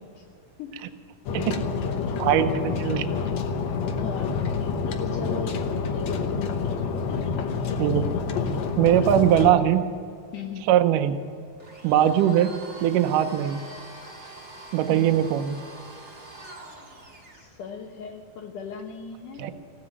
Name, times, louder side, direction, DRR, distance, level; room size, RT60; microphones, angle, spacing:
sound 1, 1.3-9.5, left 5 dB, 85° left, 1.5 m, -28 dB
voice 1, 2.2-3.0 7.8-8.0 8.8-9.9 10.7-11.2 11.8-12.5 12.8-13.6 14.7-15.6 19.4-19.5, right 11 dB, 80° right, 7 dB, 2.0 m, -21 dB
voice 2, 3.9-4.4 4.9-5.6 5.9-6.8 10.3-10.7 14.9-15.1 17.3-19.5, left 6 dB, 70° left, 2 dB, 2.1 m, -37 dB
Domestic sounds home sounds, 11.6-17.5, right 2 dB, 25° right, 1.8 m, -44 dB
16.0 x 9.2 x 9.7 m, 2.3 s
omnidirectional pair, 4.7 m